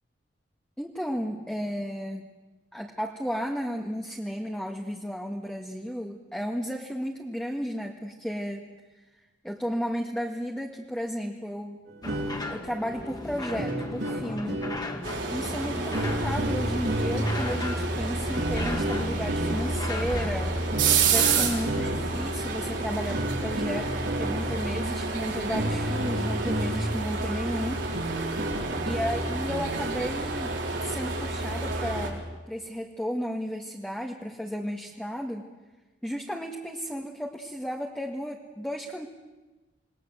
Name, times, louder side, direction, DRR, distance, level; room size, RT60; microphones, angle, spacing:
voice 1, 0.8-2.3 2.7-8.7 9.4-11.8 12.5-14.6 15.3-20.6 21.1-27.8 28.8-35.4 36.0-39.1, equal, 5° left, -1 dB, 1.7 m, -33 dB
sound 1, 11.9-27.1 27.5-27.6 27.9-30.1, right 1 dB, 65° right, 3.8 m, -33 dB
sound 2, 12.0-22.3, left 2 dB, 20° left, 2.1 m, -38 dB
sound 3, 15.0-32.1, right 3 dB, 80° right, 5.2 m, -29 dB
27.5 x 20.0 x 7.8 m, 1.2 s
head